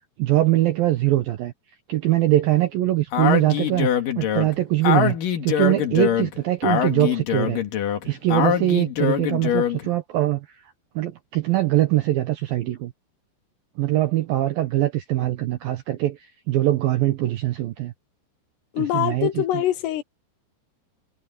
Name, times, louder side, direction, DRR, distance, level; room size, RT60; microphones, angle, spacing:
voice 1, 0.2-1.5 1.9-3.9 4.2-5.2 5.4-7.6 8.1-10.6 11.0-12.9 13.8-17.9 18.8-19.6, right 15 dB, 75° right, 2.1 m, -22 dB
Speech, 3.1-9.9, left 9 dB, 55° left, 3.0 m, -23 dB
voice 2, 18.7-20.0, left 12 dB, 80° left, 2.6 m, -24 dB
omnidirectional pair, 5.4 m